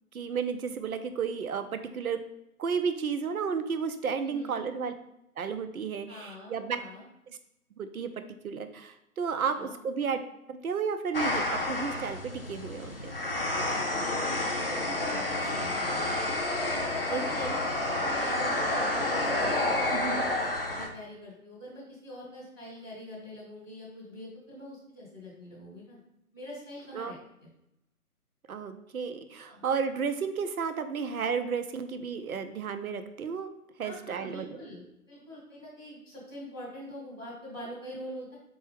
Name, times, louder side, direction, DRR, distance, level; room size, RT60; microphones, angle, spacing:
voice 1, 0.1-2.2 2.6-4.9 5.4-6.8 7.8-8.1 8.4-10.2 10.5-13.1 17.1-17.2 19.9-20.2 26.9-27.1 28.5-33.5 33.8-34.5, right 6 dB, 65° right, 9 dB, 0.6 m, -32 dB
voice 2, 4.2-4.6 6.1-7.0 9.5-9.8 13.4-19.0 19.4-20.0 20.7-26.0 26.3-27.2 29.4-29.6 33.8-38.4, equal, 15° right, -9 dB, 0.7 m, -44 dB
sound 1, 11.1-20.9, left 2 dB, 40° left, 0.5 m, -30 dB
4.1 x 3.5 x 3.3 m, 0.85 s
figure-of-eight pair, 145°, 46 cm